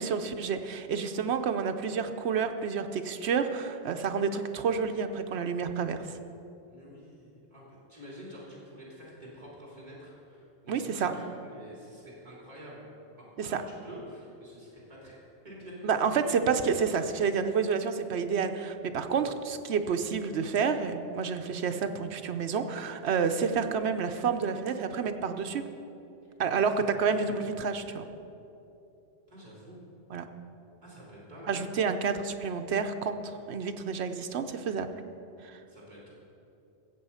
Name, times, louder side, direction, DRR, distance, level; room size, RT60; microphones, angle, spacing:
voice 1, 0.0-6.1 10.7-11.1 13.4-13.6 15.8-25.6 26.4-26.7 27.0-28.0 30.1-30.2 31.5-34.9 35.4-35.6, right 6 dB, 75° right, 7 dB, 1.0 m, -29 dB
voice 2, 6.7-12.9 13.2-16.3 26.5-27.5 29.3-29.8 30.8-31.6 35.7-36.1, equal, 35° right, -5 dB, 3.3 m, -48 dB
15.5 x 7.9 x 5.6 m, 2.8 s
omnidirectional pair, 1.1 m